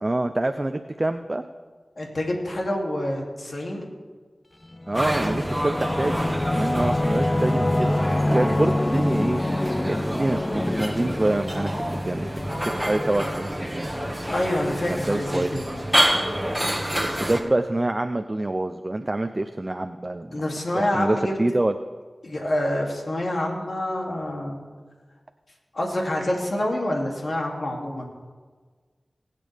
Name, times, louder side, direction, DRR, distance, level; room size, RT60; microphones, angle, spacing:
voice 1, 0.0-1.4 4.9-6.3 6.5-9.4 9.8-12.3 12.8-13.9 14.9-15.5 17.0-20.4 20.7-21.8, right 2 dB, 35° right, 7 dB, 0.6 m, -26 dB
voice 2, 2.0-3.8 14.3-15.6 20.3-21.3 22.2-24.6 25.7-28.1, left 1 dB, 65° left, -1 dB, 2.7 m, -27 dB
Singing / Musical instrument, 4.7-13.9, left 1 dB, 30° left, 0.4 m, -26 dB
sound 1, 4.9-17.4, equal, 10° right, 1.7 m, -28 dB
20.0 x 8.4 x 3.5 m, 1.5 s
cardioid pair, 40°, 0 cm